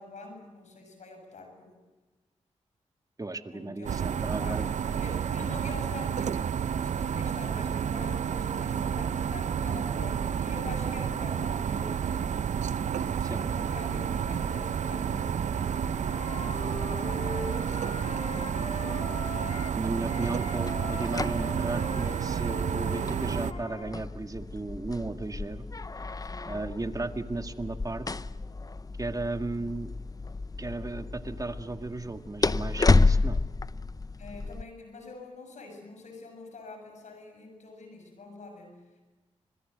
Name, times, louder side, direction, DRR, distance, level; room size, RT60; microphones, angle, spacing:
voice 1, 0.0-1.8 3.5-6.5 6.8-12.0 12.9-18.5 19.9-20.3 26.2-26.6 34.2-39.0, left 3 dB, 75° left, 5 dB, 7.2 m, -45 dB
voice 2, 3.2-4.7 13.3-13.4 19.7-25.7 26.5-28.1 29.0-29.9 30.6-33.4, right 2 dB, 30° right, 8 dB, 1.9 m, -35 dB
sound 1, 3.9-23.5, right 7 dB, 75° right, 0.8 m, -30 dB
Wind instrument woodwind instrument, 16.0-19.8 20.1-23.9, left 3 dB, 55° left, 3.4 m, -40 dB
sound 2, 20.7-34.6, left 3 dB, 30° left, 0.7 m, -31 dB
26.0 x 21.5 x 8.0 m, 1.2 s
cardioid pair, 45°, 12 cm